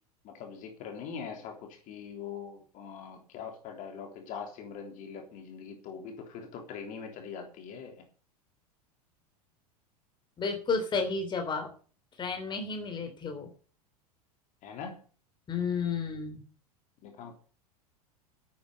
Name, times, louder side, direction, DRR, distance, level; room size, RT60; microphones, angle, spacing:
voice 1, 0.2-8.0 14.6-15.0 17.0-17.3, left 6 dB, 40° left, 3 dB, 3.3 m, -42 dB
voice 2, 10.4-11.7 12.2-13.5 15.5-16.4, left 4 dB, 25° left, 5 dB, 3.5 m, -32 dB
12.0 x 9.3 x 6.6 m, 0.40 s
figure-of-eight pair, 85°, 20 cm